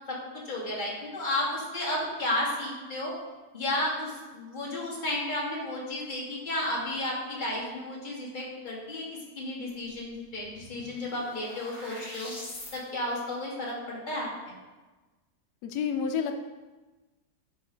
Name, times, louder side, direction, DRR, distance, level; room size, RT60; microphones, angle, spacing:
voice 1, 0.5-3.1 3.5-9.1 9.4-12.3 12.7-14.5, left 1 dB, 30° left, -4 dB, 1.7 m, -32 dB
sound 1, 9.9-10.0 10.3-12.8, left 1 dB, 60° left, 2.9 m, -43 dB
voice 2, 15.6-16.5, left 6 dB, 85° left, 7 dB, 1.2 m, -30 dB
8.5 x 5.3 x 3.8 m, 1.2 s
omnidirectional pair, 1.7 m